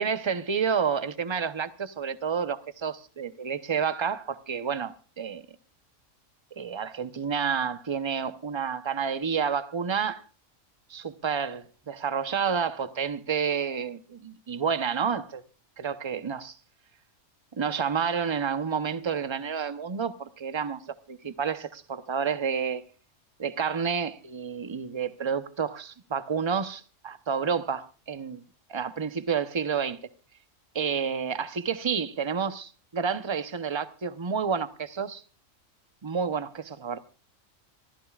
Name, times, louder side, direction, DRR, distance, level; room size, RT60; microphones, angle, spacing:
voice 1, 0.0-5.4 6.6-10.2 10.9-15.4 15.8-16.6 17.6-22.8 23.4-28.4 28.7-30.0 30.7-35.2 36.0-37.0, right 6 dB, 25° right, 0.8 m, -30 dB
26.0 x 14.5 x 2.4 m
omnidirectional pair, 1.4 m